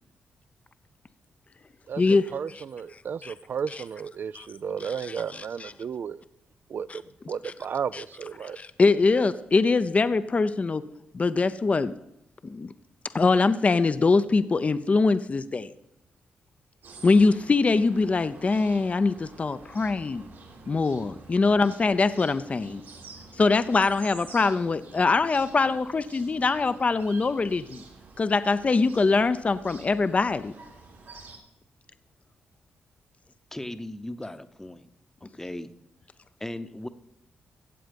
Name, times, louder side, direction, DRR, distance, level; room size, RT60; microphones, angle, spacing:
voice 1, 1.9-6.2 6.7-7.0 7.3-8.6, right 7 dB, 60° right, 0.4 m, -33 dB
voice 2, 5.3-5.7 6.9-7.0 7.4-7.5 7.9-8.0 8.4-10.8 11.1-11.9 12.4-12.7 13.1-15.7 17.0-20.3 20.7-22.8 23.4-27.8 28.2-30.5, left 4 dB, 35° left, 0.6 m, -23 dB
sound 1, 16.8-31.4, right 3 dB, 80° right, 3.0 m, -49 dB
voice 3, 33.5-34.9 35.2-35.7 36.4-36.9, left 1 dB, 10° left, 0.8 m, -37 dB
15.5 x 7.8 x 5.2 m
cardioid pair, 60°, 4 cm